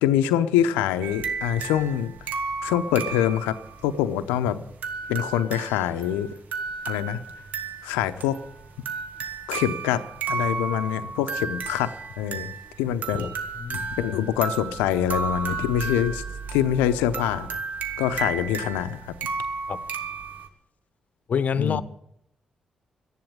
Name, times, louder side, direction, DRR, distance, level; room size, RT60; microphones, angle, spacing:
voice 1, 0.0-2.3 2.6-3.6 3.8-4.6 5.1-6.3 6.9-7.2 7.8-8.4 9.5-10.0 10.3-12.5 12.8-13.3 14.0-16.2 16.5-17.5 18.0-19.1 21.6-21.8, left 10 dB, 85° left, 0.7 m, -25 dB
sound 1, 1.0-20.5, right 5 dB, 65° right, 1.6 m, -33 dB
voice 2, 13.6-13.9 19.7-19.8 21.3-21.8, left 6 dB, 55° left, 0.9 m, -26 dB
13.0 x 10.5 x 8.9 m
hypercardioid pair, 40°, 3 cm